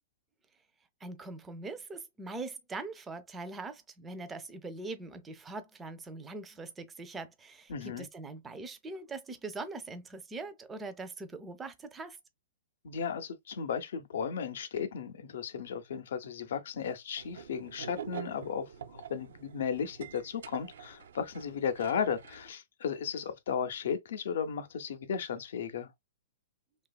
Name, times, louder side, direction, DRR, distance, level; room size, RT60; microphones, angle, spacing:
voice 1, 1.0-12.2, right 3 dB, 15° right, 0.4 m, -42 dB
voice 2, 7.7-8.1 12.8-25.9, left 7 dB, 70° left, 0.5 m, -35 dB
sound 1, 17.2-22.5, right 8 dB, 80° right, 0.3 m, -47 dB
2.7 x 2.3 x 2.2 m
hypercardioid pair, 140°, 0 cm